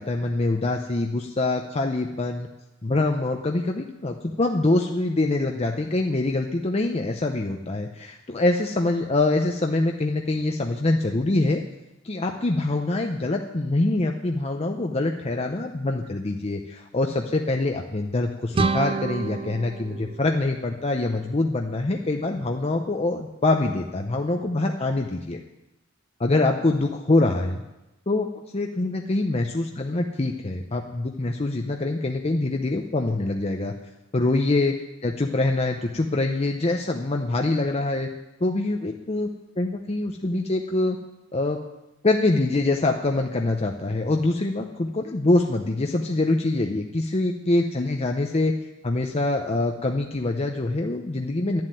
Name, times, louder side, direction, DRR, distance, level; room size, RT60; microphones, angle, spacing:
voice 1, 0.0-2.5 2.8-11.6 12.0-25.4 26.2-27.6 28.1-28.3 28.5-33.7 34.1-34.7 35.0-38.1 38.4-39.3 39.6-41.0 41.3-41.6 42.0-48.5 48.8-51.6, left 2 dB, 30° left, 3 dB, 0.7 m, -24 dB
sound 1, 18.5-21.3, right 4 dB, 25° right, 0.4 m, -29 dB
11.5 x 7.7 x 9.1 m, 0.97 s
head